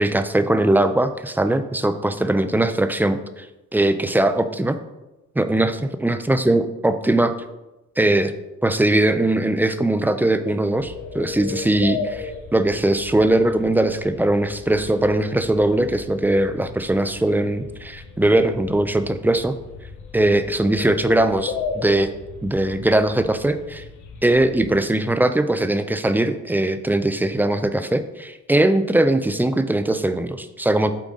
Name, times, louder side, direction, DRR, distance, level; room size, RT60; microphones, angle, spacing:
voice 1, 0.0-3.4 3.7-4.8 5.4-7.3 8.0-8.3 8.6-19.6 20.1-22.1 22.4-23.8 24.2-30.9, right 1 dB, 5° right, 9 dB, 0.4 m, -20 dB
sound 1, 10.7-24.8, left 5 dB, 75° left, 1.0 m, -35 dB
8.4 x 3.8 x 3.7 m, 0.99 s
cardioid pair, 90°, 30 cm